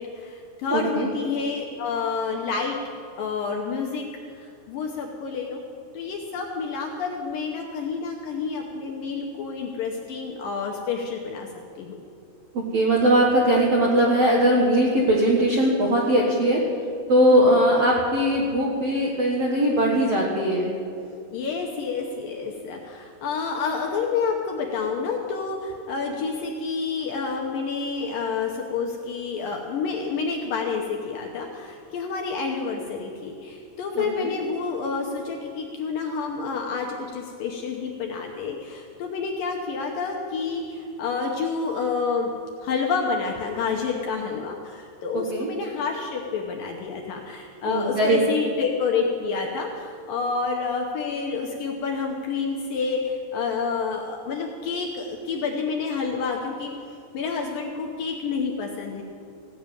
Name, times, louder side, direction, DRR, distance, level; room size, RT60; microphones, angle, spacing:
voice 1, 0.0-2.8 3.2-4.1 4.4-5.6 5.9-11.5 11.8-12.0 17.3-17.6 21.3-42.3 42.6-56.7 57.1-59.0, left 5 dB, 75° left, 1 dB, 2.2 m, -29 dB
voice 2, 0.7-1.1 12.5-16.6 17.1-20.7 33.9-34.3 45.1-45.5 47.7-48.2, right 1 dB, 65° right, -3 dB, 1.6 m, -20 dB
16.5 x 6.8 x 9.0 m, 2.5 s
omnidirectional pair, 4.9 m